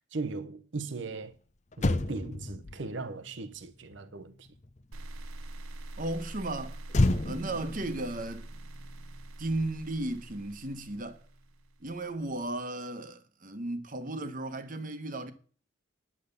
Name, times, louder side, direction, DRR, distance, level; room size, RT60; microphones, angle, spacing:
voice 1, 0.1-1.4 1.8-4.5, right 3 dB, 65° right, 0.8 m, -38 dB
Motor vehicle (road), 1.3-1.4 1.7-5.3 6.9-9.5 9.8-10.0, left 2 dB, 35° left, 0.6 m, -32 dB
sound 1, 4.9-12.0, right 2 dB, 90° right, 0.9 m, -44 dB
voice 2, 6.0-6.8 7.2-8.5 9.4-11.2 11.8-15.3, right 2 dB, 40° right, 1.2 m, -35 dB
9.8 x 8.4 x 6.8 m
head